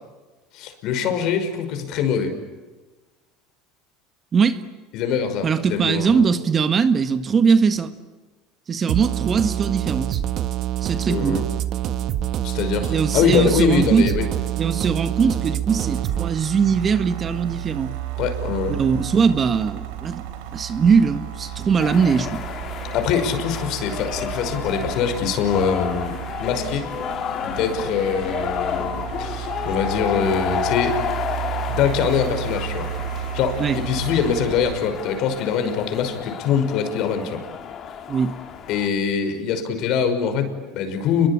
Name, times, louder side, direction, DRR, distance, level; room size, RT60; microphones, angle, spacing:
voice 1, 0.5-2.4 4.9-6.3 11.1-11.4 12.4-14.3 18.2-18.8 22.9-26.9 27.4-31.0 31.7-32.9 33.3-37.4 38.7-41.3, left 7 dB, 60° left, 5.7 m, -23 dB
voice 2, 4.3-4.6 5.4-7.9 8.7-10.2 10.8-11.4 12.9-14.1 14.6-17.9 18.7-22.5 33.6-33.8 38.1-38.4, right 6 dB, 30° right, 1.6 m, -21 dB
sound 1, 8.9-16.3, right 11 dB, 50° right, 1.6 m, -26 dB
sound 2, 15.6-34.8, right 11 dB, 80° right, 3.9 m, -33 dB
sound 3, 21.8-38.9, left 8 dB, 45° left, 3.4 m, -31 dB
29.5 x 22.5 x 8.8 m
supercardioid pair, 115°, 0 cm